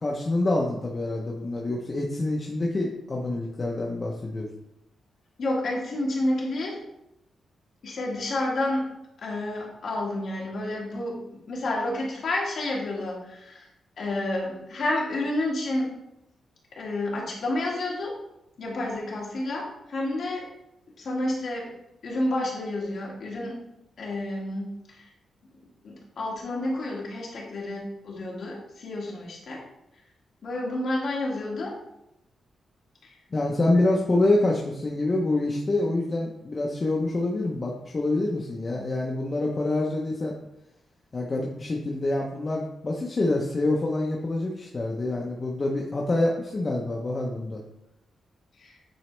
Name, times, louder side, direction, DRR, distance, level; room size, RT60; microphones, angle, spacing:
voice 1, 0.0-4.5 33.3-40.3 41.1-47.6, left 2 dB, 25° left, -2 dB, 0.6 m, -26 dB
voice 2, 5.4-6.8 7.8-8.9 9.2-13.7 14.0-15.9 16.8-18.1 18.6-20.5 21.0-21.7 22.0-23.6 24.0-25.1 25.8-29.6 30.4-31.8 33.0-33.1 48.6-48.7, left 1 dB, 50° left, -4 dB, 1.9 m, -30 dB
9.0 x 4.0 x 3.2 m, 0.85 s
wide cardioid pair, 175°, 0 cm